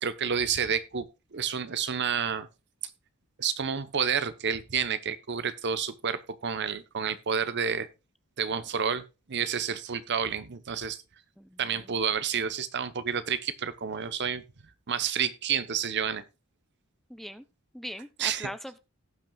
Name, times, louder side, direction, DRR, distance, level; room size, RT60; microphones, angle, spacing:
voice 1, 0.0-2.5 3.4-7.9 8.4-11.0 11.6-14.4 14.9-16.2 18.2-18.5, right 7 dB, 55° right, 13 dB, 0.9 m, -30 dB
voice 2, 11.4-12.0 17.1-17.4 17.7-18.8, equal, ahead, 11 dB, 0.6 m, -41 dB
18.0 x 6.0 x 2.3 m, 0.27 s
head